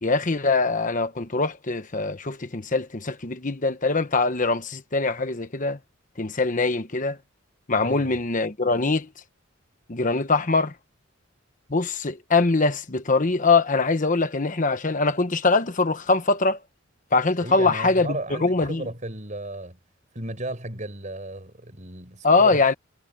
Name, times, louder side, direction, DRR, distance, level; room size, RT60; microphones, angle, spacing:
voice 1, 0.0-5.8 6.2-7.2 7.7-9.1 9.9-10.7 11.7-16.6 17.1-18.9 22.2-22.7, left 3 dB, 40° left, 1.1 m, -23 dB
voice 2, 7.8-8.2 17.4-19.8 20.1-22.7, right 1 dB, 35° right, 6.1 m, -35 dB
head